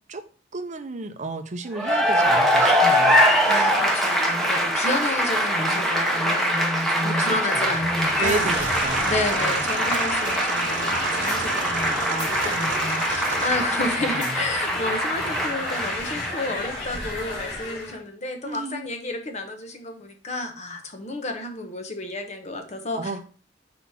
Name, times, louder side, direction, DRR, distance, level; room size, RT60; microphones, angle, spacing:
voice 1, 0.5-3.3 5.7-5.8 7.0-7.3 7.5-7.7 8.2-9.6 14.0-14.4 18.4-18.9 23.0-23.2, right 3 dB, 40° right, 9 dB, 0.6 m, -32 dB
Cheering / Applause, 1.7-16.7, equal, ahead, 1.0 m, -23 dB
voice 2, 3.5-8.7 9.0-23.2, left 2 dB, 40° left, 5 dB, 1.0 m, -31 dB
sound 1, 7.6-18.0, left 2 dB, 65° left, 2.6 m, -32 dB
sound 2, 8.2-13.6, right 5 dB, 85° right, 0.6 m, -31 dB
4.8 x 4.1 x 5.5 m, 0.39 s
head